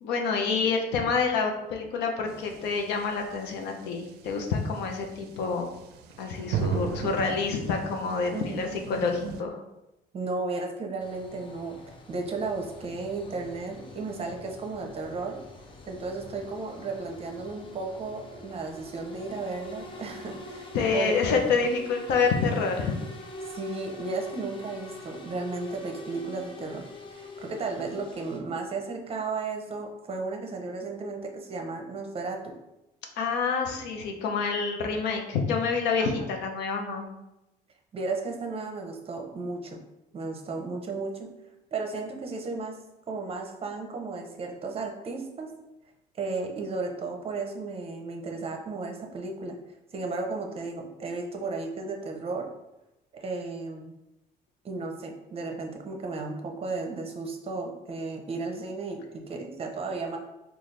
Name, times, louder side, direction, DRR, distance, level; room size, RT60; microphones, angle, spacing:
voice 1, 0.0-5.7 6.2-9.6 20.7-22.9 33.2-37.1, left 5 dB, 85° left, 3 dB, 0.6 m, -27 dB
sound 1, 2.3-9.4, right 7 dB, 75° right, 0.4 m, -37 dB
voice 2, 10.1-15.4 15.9-21.1 23.5-32.5 36.0-36.2 37.9-39.8 40.1-41.3 41.7-42.8 43.1-45.5 46.2-49.6 49.9-52.5 53.1-53.9 54.6-60.2, right 3 dB, 35° right, 2 dB, 0.6 m, -34 dB
sound 2, 11.0-28.4, left 2 dB, 30° left, 0.5 m, -45 dB
3.9 x 2.4 x 3.2 m, 0.93 s
cardioid pair, 110°, 17 cm